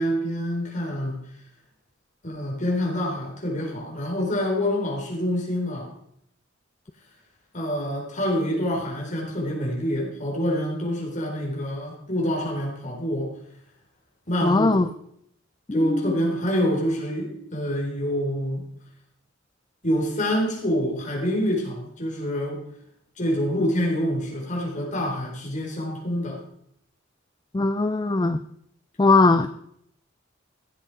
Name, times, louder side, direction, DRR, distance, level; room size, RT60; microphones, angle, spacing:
voice 1, 0.0-1.3 2.2-5.9 7.5-13.4 14.3-14.7 15.7-18.6 19.8-22.6 23.2-26.4, equal, 40° left, -2 dB, 4.3 m, -26 dB
voice 2, 14.4-14.8 15.7-16.2 27.5-28.4 29.0-29.6, left 3 dB, 20° left, 10 dB, 0.4 m, -20 dB
15.0 x 8.1 x 4.9 m, 0.71 s
head